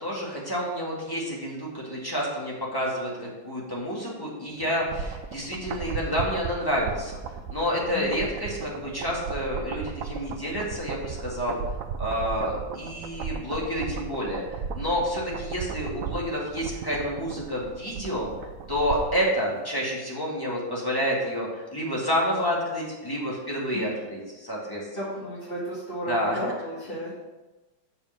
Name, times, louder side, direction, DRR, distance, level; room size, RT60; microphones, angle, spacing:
voice 1, 0.0-7.2 7.5-11.6 12.0-18.3 18.7-24.9 26.1-26.4, equal, 10° left, -5 dB, 2.0 m, -29 dB
sound 1, 4.6-19.3 19.6-19.7, right 6 dB, 65° right, 0.8 m, -36 dB
voice 2, 7.9-8.2 15.3-15.4 23.7-24.0 24.9-27.1, equal, 30° left, -11 dB, 2.3 m, -33 dB
6.8 x 5.3 x 6.6 m, 1.1 s
omnidirectional pair, 1.9 m